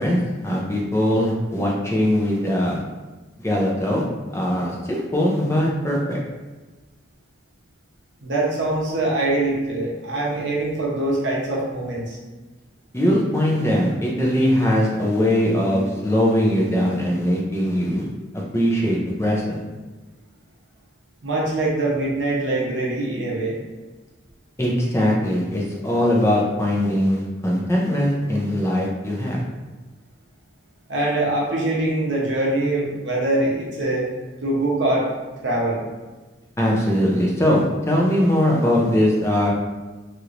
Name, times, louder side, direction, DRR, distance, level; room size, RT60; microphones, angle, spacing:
voice 1, 0.0-2.8 3.4-4.0 4.3-6.2 12.9-19.6 24.6-29.4 36.6-39.5, equal, 15° left, -3 dB, 0.5 m, -21 dB
voice 2, 8.2-12.2 21.2-23.6 30.9-34.1 34.4-35.1 35.4-35.8, right 2 dB, 80° right, -3 dB, 0.8 m, -23 dB
3.1 x 2.9 x 2.5 m, 1.2 s
head